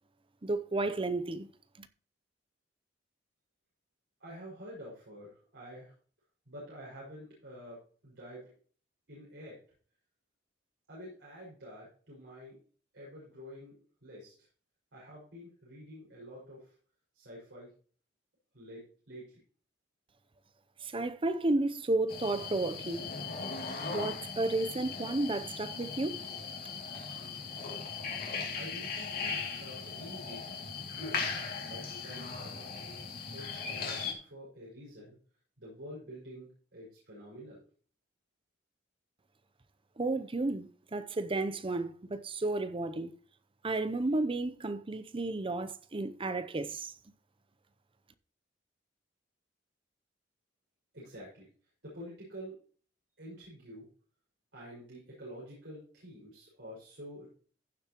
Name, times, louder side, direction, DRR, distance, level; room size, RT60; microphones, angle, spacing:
voice 1, 0.4-1.5 1.8-1.9 20.8-23.1 23.9-26.2 40.0-43.1 43.6-46.9, right 2 dB, 30° right, 0.6 m, -32 dB
voice 2, 4.2-5.9 6.5-8.4 9.1-9.6 10.9-12.6 12.9-13.8 14.0-14.5 14.9-16.7 17.1-17.7 18.5-19.4 28.5-30.5 30.8-31.3 31.6-32.7 33.3-35.2 35.6-37.6 50.9-51.5 51.8-52.6 53.2-53.9 54.5-57.3, equal, 85° right, 5.5 m, -48 dB
sound 1, 22.1-34.1, left 5 dB, 55° left, 2.4 m, -38 dB
15.5 x 7.2 x 3.0 m
head